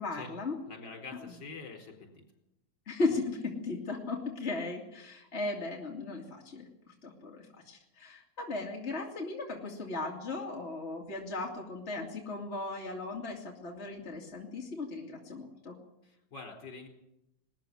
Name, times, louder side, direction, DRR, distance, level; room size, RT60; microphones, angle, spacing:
voice 1, 0.0-0.6 1.3-1.4 2.9-15.8, left 3 dB, 35° left, -1 dB, 2.7 m, -37 dB
voice 2, 0.7-2.2 16.0-16.9, left 4 dB, 60° left, 3 dB, 5.0 m, -46 dB
20.0 x 14.0 x 9.7 m, 0.85 s
omnidirectional pair, 2.2 m